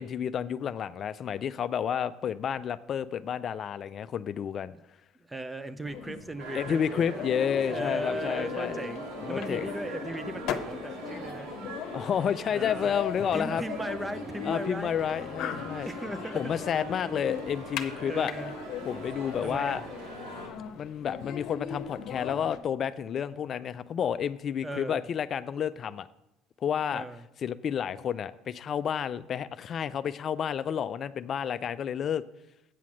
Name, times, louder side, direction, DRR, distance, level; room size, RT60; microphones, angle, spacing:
voice 1, 0.0-4.7 6.5-8.8 9.3-9.7 11.9-13.6 14.4-15.9 16.3-18.3 18.9-19.8 20.8-26.1 26.6-27.0 27.4-32.2, left 8 dB, 45° left, 13 dB, 0.3 m, -30 dB
voice 2, 5.3-7.3 7.5-11.5 12.4-14.9 15.8-16.5 17.0-17.1 18.0-18.5 19.4-19.8 24.6-25.1 26.9-27.2, right 1 dB, 10° right, 12 dB, 0.6 m, -37 dB
sound 1, 5.9-22.6, left 7 dB, 65° left, 0.8 m, -39 dB
sound 2, 6.4-20.5, right 2 dB, 90° right, 2.4 m, -42 dB
8.4 x 5.8 x 6.2 m, 0.89 s
supercardioid pair, 90°, 0 cm